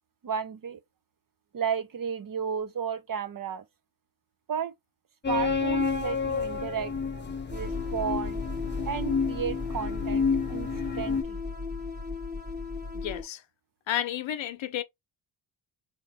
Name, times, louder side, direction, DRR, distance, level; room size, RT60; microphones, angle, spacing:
voice 1, 0.2-0.8 1.5-3.6 4.5-4.7 5.3-6.9 7.5-8.4 8.8-11.4, right 7 dB, 45° right, 0.8 m, -33 dB
sound 1, 5.2-11.2, left 5 dB, 25° left, 0.9 m, -30 dB
sound 2, 7.5-13.2, left 4 dB, 20° right, 1.1 m, -35 dB
voice 2, 12.9-13.4 13.9-14.8, left 11 dB, 70° left, 0.8 m, -31 dB
4.6 x 2.9 x 3.4 m
cardioid pair, 80°, 47 cm